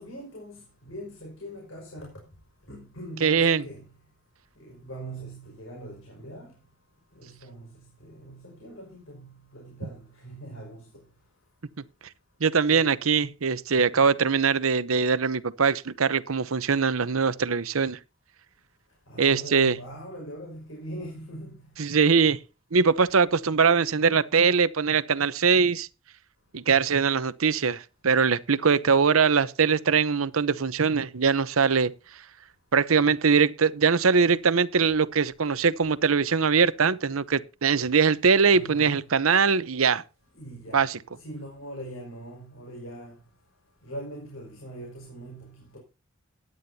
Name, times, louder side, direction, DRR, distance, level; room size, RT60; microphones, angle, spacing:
voice 1, 0.0-2.2 2.7-3.8 4.6-6.5 7.2-10.9 12.7-13.0 19.1-21.6 38.5-39.0 40.3-40.8 41.2-43.2 43.8-45.8, right 1 dB, 70° left, 5.4 m, -41 dB
voice 2, 3.2-3.6 12.4-18.0 19.2-19.7 21.8-22.4 22.7-25.9 26.5-31.9 32.7-40.0 40.7-41.0, right 5 dB, 75° right, 0.8 m, -22 dB
17.5 x 11.0 x 2.8 m
head